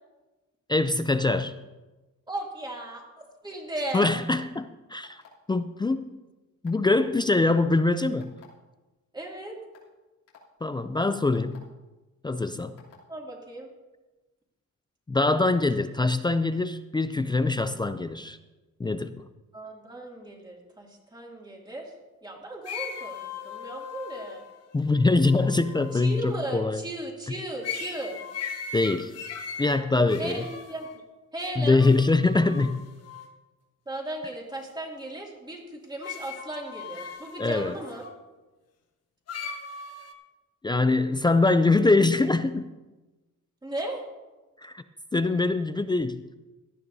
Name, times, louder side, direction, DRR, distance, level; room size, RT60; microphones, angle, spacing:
voice 1, 0.7-1.5 3.9-5.2 5.5-6.1 6.6-8.3 10.6-11.6 12.2-12.7 15.1-18.4 18.8-19.1 24.7-26.8 28.7-29.1 29.6-30.4 31.6-32.8 37.4-37.7 40.6-42.7 44.6-44.8 45.1-46.2, left 3 dB, 15° left, 10 dB, 0.4 m, -23 dB
voice 2, 2.3-4.1 9.1-9.6 13.1-13.7 19.5-21.9 22.2-24.4 25.9-28.2 30.2-31.0 31.3-31.8 33.9-38.0 43.6-44.0, right 1 dB, 15° right, -1 dB, 2.5 m, -36 dB
sound 1, 5.0-5.5 6.6-7.1 8.2-8.5 9.2-9.3 9.7-9.9 10.3-10.4 11.3-11.6 12.8-13.0, left 8 dB, 85° left, 3.2 m, -54 dB
sound 2, 22.6-26.3 27.6-31.0 31.8-33.3 36.0-38.1 39.3-40.1, left 6 dB, 50° left, 1.3 m, -38 dB
17.5 x 12.5 x 2.7 m, 1.2 s
cardioid pair, 130°, 32 cm